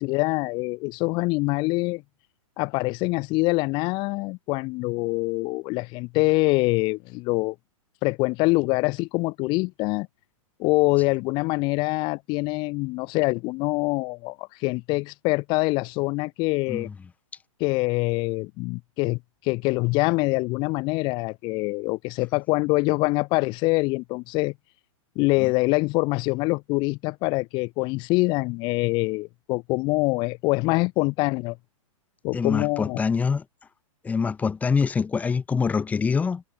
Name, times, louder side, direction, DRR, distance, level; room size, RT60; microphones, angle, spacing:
voice 1, 0.0-2.0 2.6-7.5 8.0-10.1 10.6-16.9 17.6-24.5 25.1-31.6 32.2-33.0, left 25 dB, 25° left, 2.8 m, -24 dB
voice 2, 32.3-33.4 34.0-36.4, left 5 dB, 10° left, 3.7 m, -24 dB
hypercardioid pair, 165°, 18 cm